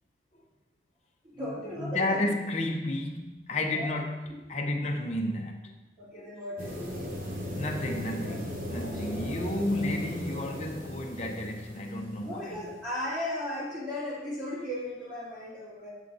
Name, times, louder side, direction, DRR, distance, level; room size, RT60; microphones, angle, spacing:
voice 1, 1.2-2.3 3.8-3.9 6.0-7.2 9.0-9.3 12.2-15.9, left 1 dB, 25° right, 2.0 m, -36 dB
voice 2, 1.8-4.2 4.5-5.7 7.6-12.6, left 1 dB, 40° left, 0.7 m, -32 dB
sound 1, 6.6-12.5, left 1 dB, 50° right, 0.9 m, -37 dB
7.4 x 6.5 x 2.6 m
head